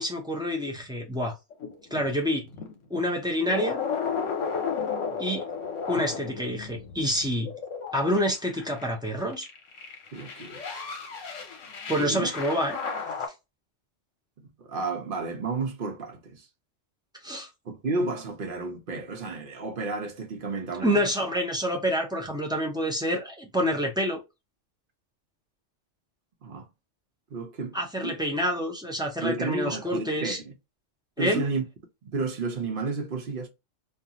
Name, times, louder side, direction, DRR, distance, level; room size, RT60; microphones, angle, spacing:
voice 1, 0.0-1.3 1.9-2.4 2.9-3.8 5.2-5.4 5.9-7.5 7.9-9.5 11.9-12.8 17.2-17.5 20.8-24.2 27.7-30.4 31.2-31.4, equal, 5° right, 0.5 m, -27 dB
sound 1, 1.5-2.8 3.3-8.9 9.3-13.3, left 5 dB, 80° left, 1.1 m, -34 dB
voice 2, 10.1-10.6 12.0-12.3 14.4-16.5 17.7-21.0 26.4-26.7 27.3-28.1 29.2-30.5 31.2-31.6 32.0-33.5, right 3 dB, 55° right, 0.8 m, -32 dB
2.5 x 2.3 x 2.8 m
omnidirectional pair, 1.3 m